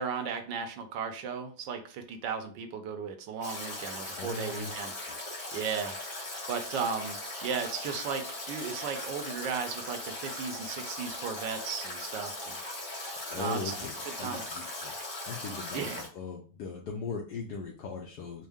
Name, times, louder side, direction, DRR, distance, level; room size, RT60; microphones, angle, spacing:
voice 1, 0.0-4.9 5.5-6.0 6.5-12.6 13.3-13.6 14.2-14.4 15.7-16.0, right 6 dB, 75° right, 6 dB, 1.3 m, -35 dB
Stream / Drip / Trickle dribble, 3.4-16.1, left 2 dB, 45° left, 1.7 m, -39 dB
voice 2, 4.1-4.7 13.3-14.9 15.2-18.5, left 4 dB, 70° left, 0 dB, 1.1 m, -39 dB
4.4 x 2.0 x 3.5 m, 0.40 s
omnidirectional pair, 2.0 m